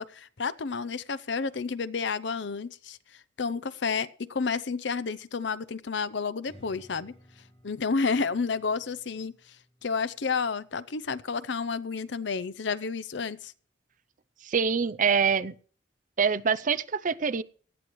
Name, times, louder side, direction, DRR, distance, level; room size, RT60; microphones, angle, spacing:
voice 1, 0.0-3.0 3.4-7.1 7.6-9.6 9.8-13.5, left 5 dB, 70° left, 0.7 m, -30 dB
Strum, 6.4-11.7, equal, 35° left, 6.2 m, -58 dB
voice 2, 14.4-15.5 16.2-17.4, right 6 dB, 45° right, 0.6 m, -25 dB
18.5 x 12.5 x 3.1 m
head